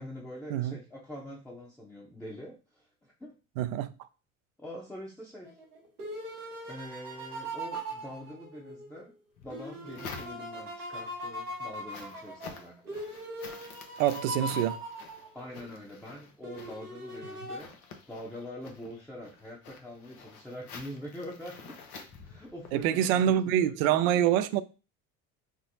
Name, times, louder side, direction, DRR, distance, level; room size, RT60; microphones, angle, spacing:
voice 1, 0.0-3.3 4.6-5.5 6.7-9.1 9.4-13.0 15.3-17.7 18.1-21.8 22.2-23.7, left 1 dB, 5° left, 0.8 m, -44 dB
voice 2, 3.6-3.9 14.0-14.8 22.7-24.6, right 11 dB, 65° right, 0.5 m, -26 dB
sound 1, 5.4-9.0 9.5-15.7 16.4-17.6, equal, 85° right, 1.2 m, -40 dB
sound 2, 9.3-10.8 11.3-22.8, left 5 dB, 75° left, 0.9 m, -49 dB
4.4 x 2.0 x 2.7 m
hypercardioid pair, 70°, 44 cm